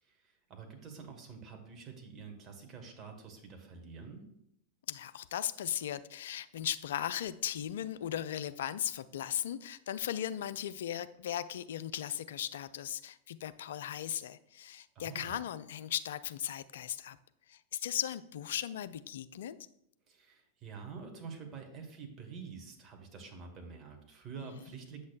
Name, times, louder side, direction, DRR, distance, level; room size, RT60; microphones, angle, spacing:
voice 1, 0.0-4.3 14.9-15.4 20.1-25.1, right 5 dB, 30° right, 3 dB, 1.4 m, -47 dB
voice 2, 4.9-17.2 17.5-19.6, left 10 dB, 60° left, 14 dB, 0.3 m, -37 dB
8.1 x 6.2 x 2.4 m, 0.76 s
figure-of-eight pair, 90°, 0 cm